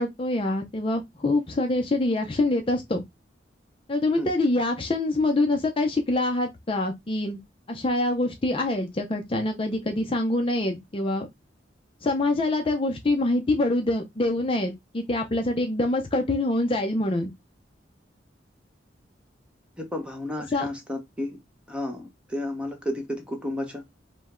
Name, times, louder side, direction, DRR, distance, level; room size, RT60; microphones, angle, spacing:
voice 1, 0.0-3.0 3.9-7.4 7.7-11.3 12.0-17.3 20.5-20.7, left 2 dB, 30° left, 0.5 m, -25 dB
voice 2, 19.8-21.4 21.7-23.8, left 1 dB, 5° right, 1.0 m, -32 dB
5.0 x 2.1 x 3.6 m
head